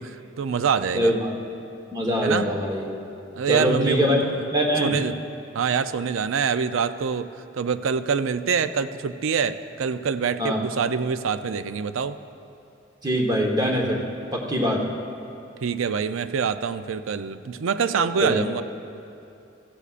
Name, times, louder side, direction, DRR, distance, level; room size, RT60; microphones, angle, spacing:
voice 1, 0.0-1.1 2.2-2.5 3.3-4.4 4.8-5.2 5.5-7.3 7.5-12.2 15.6-18.6, right 6 dB, 90° right, 11 dB, 0.4 m, -25 dB
voice 2, 0.9-1.3 1.9-2.9 3.5-5.0 10.4-10.6 13.0-14.0 14.3-14.8 18.0-18.4, equal, 20° right, 0 dB, 1.2 m, -23 dB
15.0 x 15.0 x 2.5 m, 2.7 s
head